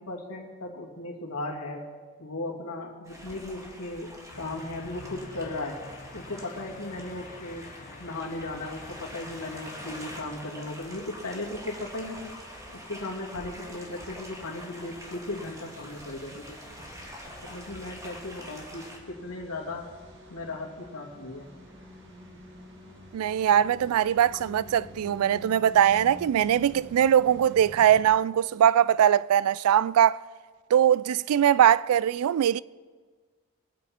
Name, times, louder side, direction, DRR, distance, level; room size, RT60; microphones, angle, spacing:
voice 1, 0.0-1.9 2.2-5.8 6.1-7.7 8.0-12.3 12.7-16.6 17.4-19.9 20.3-21.5, left 2 dB, 85° left, 2.6 m, -37 dB
sound 1, 3.0-19.0, equal, 15° right, 1.7 m, -45 dB
sound 2, 4.3-10.4, left 3 dB, 35° left, 0.9 m, -47 dB
sound 3, 8.2-28.0, equal, 55° right, 2.2 m, -50 dB
voice 2, 23.1-30.2 30.7-32.6, right 10 dB, 80° right, 0.3 m, -21 dB
22.5 x 8.3 x 4.3 m
head